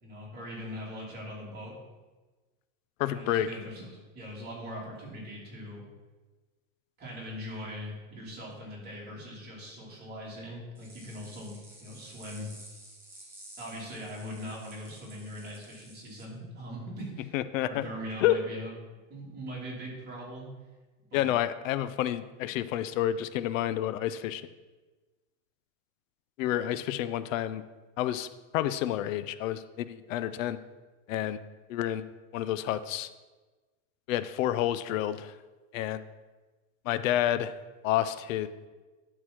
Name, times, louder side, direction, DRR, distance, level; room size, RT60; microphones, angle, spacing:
voice 1, 0.0-1.8 3.1-5.8 7.0-12.5 13.6-17.3 17.7-18.7 19.1-20.5 21.1-21.3, equal, 25° right, -5 dB, 3.1 m, -41 dB
voice 2, 3.0-3.5 17.3-17.9 18.2-18.3 21.1-24.4 26.4-27.6 28.0-28.3 28.5-30.6 31.1-31.4 31.7-32.1 32.3-33.1 34.1-35.3 35.7-36.0 36.9-37.5 37.8-38.5, left 12 dB, 90° left, 13 dB, 0.6 m, -29 dB
sound 1, 10.7-16.2, right 1 dB, 5° right, 1.1 m, -52 dB
11.0 x 4.0 x 6.1 m, 1.2 s
supercardioid pair, 160°, 38 cm